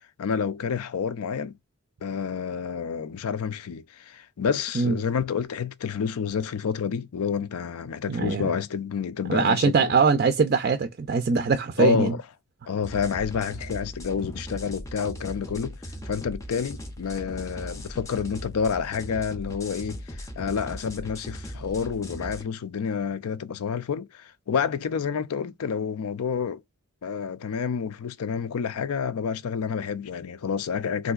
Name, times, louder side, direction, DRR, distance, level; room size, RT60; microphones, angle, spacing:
voice 1, 0.2-1.5 2.0-10.0 11.8-12.2 12.7-15.8 16.0-26.6 27.0-31.1, left 6 dB, 85° left, 0.4 m, -29 dB
voice 2, 8.1-8.5 9.3-12.1, right 5 dB, 45° right, 0.4 m, -22 dB
sound 1, 12.8-22.4, equal, 15° left, 0.5 m, -38 dB
3.7 x 2.5 x 2.3 m
head